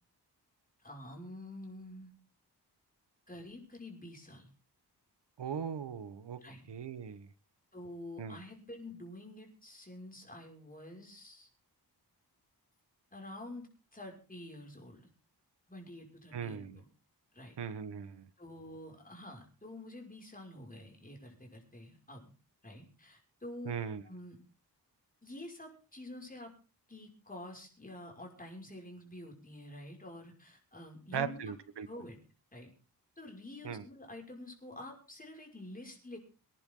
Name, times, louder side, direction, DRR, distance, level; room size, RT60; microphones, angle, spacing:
voice 1, 0.8-2.1 3.3-4.5 6.4-6.6 7.7-11.5 13.1-13.7 13.9-15.0 15.7-16.9 17.3-17.6 18.4-22.2 22.6-23.7 24.0-24.4 25.2-26.5 26.9-31.5 31.8-32.2 32.5-32.7 33.2-36.2, left 1 dB, 20° left, 1 dB, 6.0 m, -48 dB
voice 2, 5.4-6.4 6.7-7.3 8.2-8.4 16.3-16.8 17.6-18.3 23.6-24.0 31.1-31.9 33.6-33.8, right 7 dB, 85° right, 12 dB, 1.4 m, -39 dB
25.0 x 10.5 x 3.9 m, 0.34 s
wide cardioid pair, 95°, 40 cm